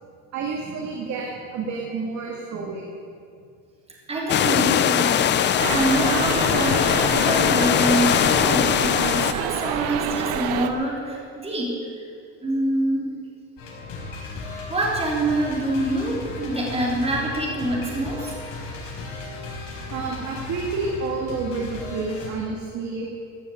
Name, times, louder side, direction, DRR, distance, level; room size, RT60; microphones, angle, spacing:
voice 1, 0.3-2.8 10.9-11.2 16.4-16.5 19.9-23.1, right 4 dB, 45° right, -1 dB, 2.1 m, -30 dB
voice 2, 4.1-11.8 12.4-13.1 14.7-18.3, right 1 dB, 15° right, -3 dB, 3.4 m, -25 dB
sound 1, 4.3-9.3, left 10 dB, 30° left, 0.4 m, -21 dB
sound 2, 5.6-10.7, right 8 dB, 65° right, 1.2 m, -28 dB
sound 3, 13.6-22.3, left 3 dB, 55° left, 5.0 m, -36 dB
15.5 x 9.6 x 8.5 m, 2.4 s
cardioid pair, 160°, 39 cm